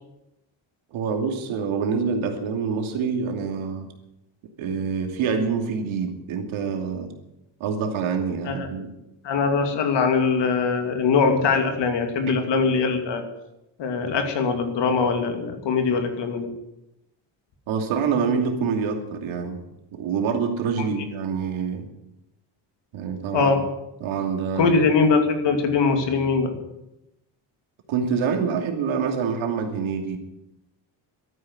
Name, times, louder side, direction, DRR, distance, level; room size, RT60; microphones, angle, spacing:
voice 1, 0.9-3.9 4.6-7.1 7.6-8.9 12.3-12.4 17.7-19.6 19.9-21.9 22.9-23.6 24.0-24.8 27.9-30.2, right 6 dB, 90° right, 4 dB, 2.8 m, -26 dB
voice 2, 9.2-13.2 13.8-16.5 20.8-20.9 23.3-23.6 24.6-26.6, left 4 dB, 65° left, 6 dB, 2.7 m, -22 dB
13.0 x 9.8 x 9.6 m, 0.90 s
cardioid pair, 155°, 46 cm